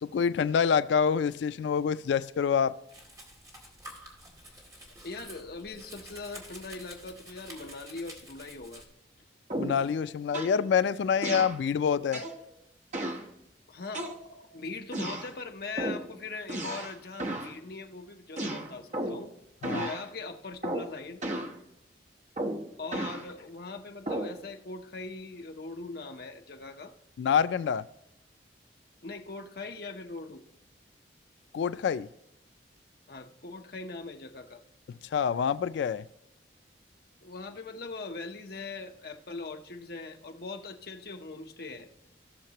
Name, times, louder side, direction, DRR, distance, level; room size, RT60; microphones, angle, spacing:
voice 1, 0.0-2.7 9.6-12.2 19.6-19.8 27.2-27.9 31.5-32.1 35.1-36.0, left 7 dB, 70° left, 0.3 m, -26 dB
Domestic sounds home sounds, 2.9-8.9, right 1 dB, 20° right, 2.1 m, -49 dB
voice 2, 5.0-8.8 13.7-14.2 14.5-19.3 19.7-21.2 22.8-26.9 29.0-30.4 33.1-34.6 37.2-41.9, left 3 dB, 55° left, 0.8 m, -41 dB
Boing Sound, 9.5-9.9 10.3-10.6 11.2-11.6 12.1-12.4 12.9-13.3 13.9-14.5 14.9-15.3 15.8-16.1 16.5-16.9 17.2-17.5 18.4-19.3 19.6-20.0 20.6-20.9 21.2-21.6 22.4-23.2 24.1-24.4, right 1 dB, 40° right, 1.0 m, -34 dB
16.5 x 6.5 x 2.9 m
head